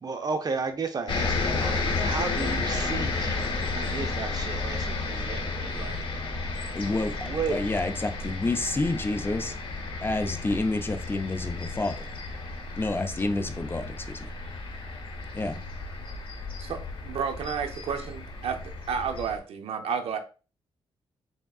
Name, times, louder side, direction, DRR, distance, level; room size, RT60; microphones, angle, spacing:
voice 1, 0.0-6.0 7.2-7.6, right 4 dB, 40° right, 0.7 m, -33 dB
sound 1, 1.1-19.4, left 3 dB, 60° left, 1.0 m, -32 dB
voice 2, 6.7-9.5 10.0-11.9 12.7-14.3 15.3-15.6, left 2 dB, 20° left, 0.5 m, -29 dB
voice 3, 16.6-18.6 18.9-20.2, right 6 dB, 75° right, 0.6 m, -31 dB
3.5 x 3.5 x 2.3 m
cardioid pair, 75°, 10 cm